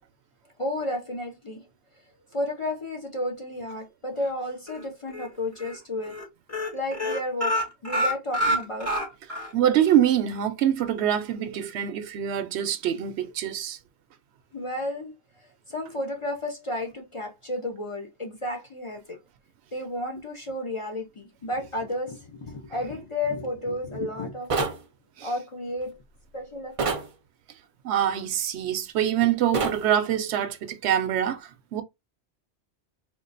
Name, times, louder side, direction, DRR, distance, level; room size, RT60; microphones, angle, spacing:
voice 1, 0.6-1.7 2.3-6.2 6.7-7.6 7.8-8.9 14.5-15.1 15.7-19.2 19.7-24.5 25.2-26.0 26.3-26.9, left 1 dB, 40° left, 0.5 m, -32 dB
sound 1, 4.7-5.3 5.6-5.8 6.0-6.2 6.5-9.5 9.9-10.0 10.3-10.4, equal, 15° left, 1.0 m, -27 dB
voice 2, 9.5-13.8 25.2-25.3 27.8-31.8, right 10 dB, 80° right, 0.8 m, -25 dB
sound 2, 24.5-24.8 26.8-27.1 29.5-29.8, right 4 dB, 45° right, 0.5 m, -26 dB
3.7 x 2.4 x 2.5 m
omnidirectional pair, 1.1 m